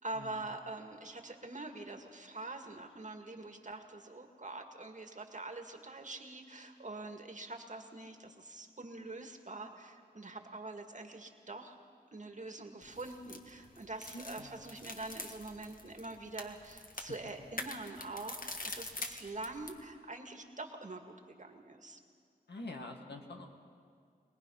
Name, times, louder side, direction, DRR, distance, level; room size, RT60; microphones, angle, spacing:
voice 1, 0.0-11.8 12.1-22.0, right 2 dB, 45° right, 4 dB, 1.9 m, -45 dB
sound 1, 12.8-19.8, left 2 dB, 55° left, 1.7 m, -46 dB
voice 2, 14.1-14.6 22.5-23.5, left 2 dB, 85° left, 2 dB, 2.1 m, -46 dB
24.5 x 19.0 x 5.7 m, 2.3 s
cardioid pair, 55°, 17 cm